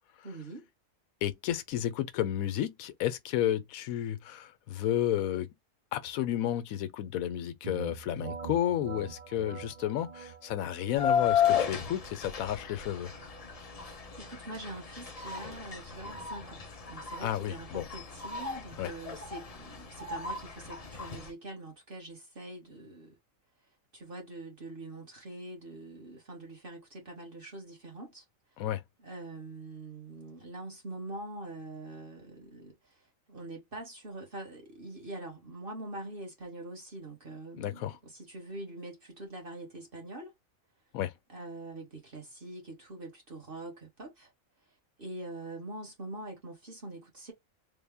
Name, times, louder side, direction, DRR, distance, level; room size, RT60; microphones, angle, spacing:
voice 1, 0.2-0.7 13.6-23.1 23.9-28.2 29.0-40.3 41.3-44.3 45.0-47.3, right 2 dB, 40° right, 1.4 m, -44 dB
voice 2, 1.2-5.5 5.9-13.1 17.2-17.9 18.8-18.9 28.6-28.8 37.6-37.9 40.9-41.1, left 11 dB, 85° left, 1.1 m, -32 dB
sound 1, 7.6-17.2, right 7 dB, 75° right, 0.3 m, -47 dB
sound 2, 11.0-21.3, left 8 dB, 35° left, 0.6 m, -34 dB
3.5 x 2.1 x 3.4 m
omnidirectional pair, 1.4 m